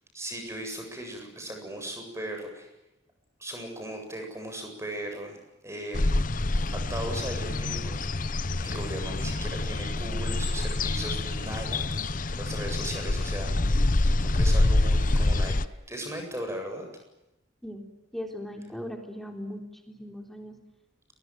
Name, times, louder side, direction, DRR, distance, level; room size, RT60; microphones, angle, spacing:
voice 1, 0.1-2.7 3.4-5.4 5.6-6.3 6.7-8.1 8.6-15.6 15.9-16.9, right 1 dB, 15° right, 4 dB, 8.0 m, -38 dB
sound 1, 5.9-15.7, left 2 dB, 40° left, 0.9 m, -26 dB
voice 2, 18.1-20.6, equal, ahead, 3 dB, 3.7 m, -38 dB
29.5 x 22.0 x 7.8 m, 0.94 s
head